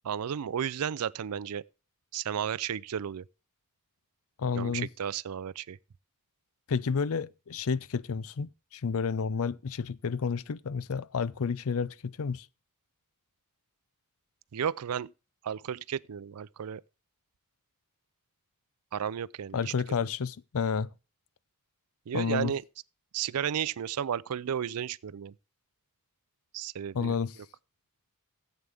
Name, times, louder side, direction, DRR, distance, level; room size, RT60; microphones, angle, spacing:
voice 1, 0.0-1.7 2.1-3.2 4.5-5.8 14.5-15.1 15.4-16.8 18.9-19.7 22.1-22.6 23.1-25.3 26.5-27.1, right 8 dB, 85° right, 0.4 m, -33 dB
voice 2, 4.4-4.9 6.7-12.5 19.5-20.9 22.1-22.5 26.9-27.4, left 5 dB, 70° left, 0.5 m, -30 dB
14.5 x 8.3 x 3.5 m
head